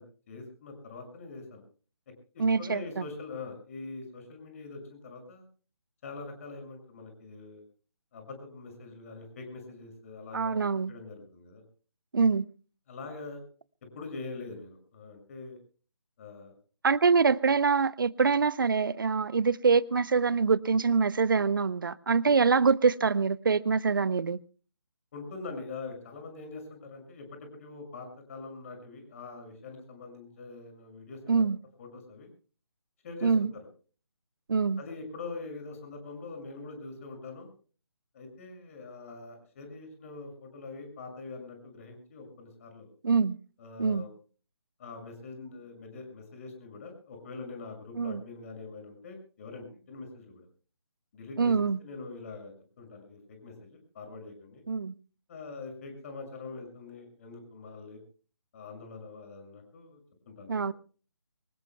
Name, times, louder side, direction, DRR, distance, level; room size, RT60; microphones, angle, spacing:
voice 1, 0.0-1.6 2.3-5.4 6.0-7.6 8.1-10.6 10.9-11.6 12.9-13.4 13.9-15.6 16.2-16.5 25.1-31.4 31.8-32.3 33.0-33.6 34.8-37.5 38.1-42.9 43.6-44.1 44.8-50.5 51.1-54.6 55.3-58.0 58.5-60.0 60.3-60.7, left 3 dB, 30° left, 6.6 m, -43 dB
voice 2, 2.4-2.8 10.3-10.9 12.1-12.5 16.8-24.4 31.3-31.6 33.2-33.5 34.5-34.8 43.0-43.4 43.8-44.0 48.0-48.2 51.4-51.8 54.7-54.9 60.5-60.7, right 5 dB, 50° right, 0.8 m, -25 dB
25.0 x 20.0 x 2.3 m
figure-of-eight pair, 150°, 14 cm